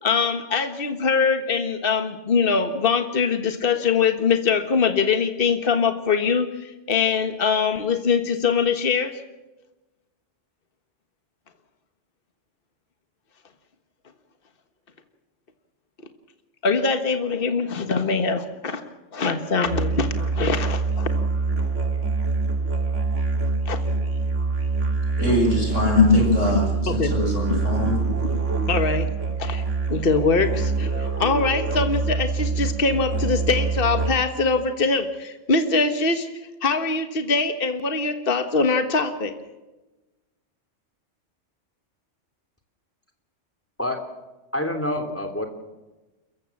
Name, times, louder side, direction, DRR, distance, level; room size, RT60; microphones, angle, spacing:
voice 1, 0.0-9.1 16.6-18.8 19.1-21.1 23.6-23.8 26.0-26.2 26.8-27.9 28.7-29.1 29.4-29.6 29.9-36.3 36.6-39.3, left 4 dB, 50° left, 7 dB, 1.7 m, -22 dB
Musical instrument, 19.6-34.4, right 4 dB, 80° right, 2.6 m, -25 dB
voice 2, 25.2-28.0, equal, 80° left, 1 dB, 6.6 m, -24 dB
voice 3, 44.5-45.5, left 1 dB, 10° left, 4 dB, 3.2 m, -26 dB
29.0 x 15.0 x 7.3 m, 1.1 s
omnidirectional pair, 1.3 m